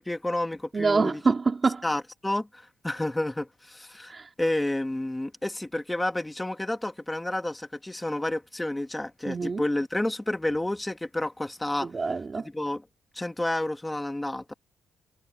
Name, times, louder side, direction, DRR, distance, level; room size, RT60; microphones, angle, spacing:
voice 1, 0.0-1.2 1.8-11.9 12.4-12.8 13.1-14.5, left 1 dB, 10° left, 2.1 m, -30 dB
voice 2, 0.7-1.8 4.1-4.3 9.3-9.6 11.8-12.5, right 4 dB, 30° right, 4.0 m, -26 dB
cardioid pair, 90°, 0 cm